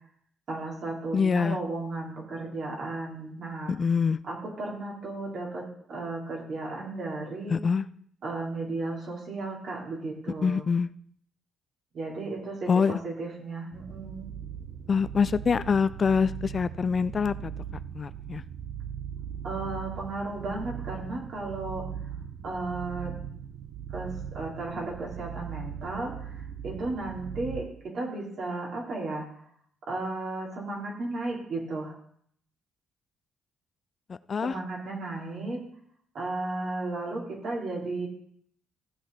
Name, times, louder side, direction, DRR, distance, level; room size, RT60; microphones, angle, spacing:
voice 1, 0.5-3.7 4.2-7.6 8.2-10.6 11.9-14.3 19.4-22.1 22.4-23.2 23.9-29.3 29.9-31.9 34.4-35.6 36.1-38.1, right 2 dB, 60° right, -2 dB, 3.8 m, -34 dB
voice 2, 1.1-1.6 3.7-4.2 7.5-7.8 10.4-10.9 12.7-12.9 14.9-17.5 17.9-18.4 34.1-34.5, left 5 dB, 40° left, 15 dB, 0.4 m, -25 dB
sound 1, 13.7-27.6, right 8 dB, 75° right, 0.7 m, -39 dB
14.5 x 7.9 x 4.2 m, 0.66 s
cardioid pair, 90°, 0 cm